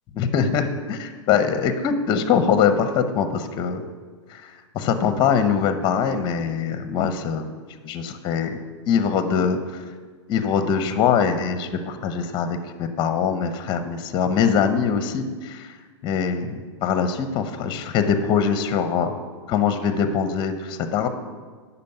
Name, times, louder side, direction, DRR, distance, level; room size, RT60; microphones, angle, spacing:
voice 1, 0.2-3.8 4.3-7.5 7.8-8.5 8.9-9.8 10.3-15.7 16.0-19.1 19.5-21.1, left 7 dB, 30° left, 9 dB, 0.7 m, -23 dB
10.5 x 4.2 x 5.5 m, 1.5 s
hypercardioid pair, 115°, 15 cm